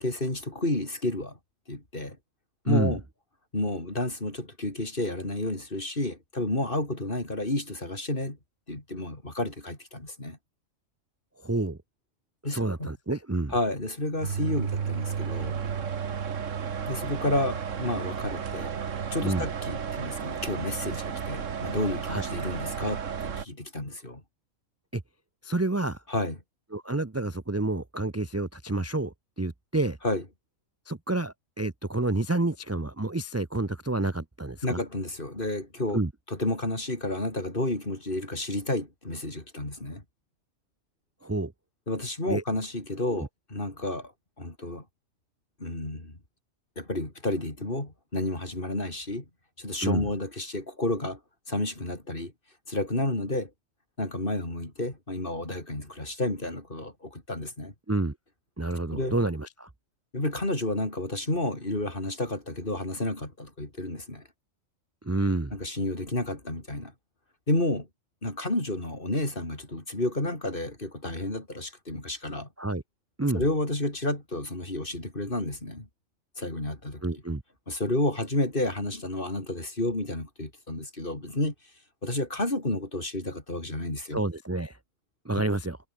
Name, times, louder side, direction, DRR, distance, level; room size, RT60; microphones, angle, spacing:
voice 1, 0.0-1.4 1.7-2.2 2.7-3.0 3.5-8.4 8.7-10.4 12.4-12.9 13.5-15.6 16.9-18.7 19.1-24.2 26.1-26.4 30.0-30.2 34.6-36.0 36.3-40.0 41.9-44.1 44.4-44.8 45.6-46.2 46.8-49.2 49.6-51.2 51.5-52.3 52.7-53.5 54.0-57.7 58.9-59.2 60.1-64.2 65.5-66.9 67.5-67.9 68.2-72.5 73.3-75.9 76.4-77.0 77.7-81.5 82.0-84.2, left 1 dB, 40° left, 5.1 m, -31 dB
voice 2, 2.6-3.0 11.4-11.8 12.5-13.5 19.2-19.5 22.1-22.2 24.9-25.0 25.4-26.0 26.7-30.0 30.9-34.8 35.9-36.1 41.2-41.5 42.3-42.4 43.1-43.3 49.8-50.1 57.9-58.1 58.6-59.7 65.0-65.5 72.6-72.8 73.2-73.4 77.0-77.4 84.1-84.8 85.2-85.8, right 2 dB, 15° right, 0.7 m, -29 dB
sound 1, 14.2-23.5, right 7 dB, 65° right, 1.7 m, -33 dB
omnidirectional pair, 1.4 m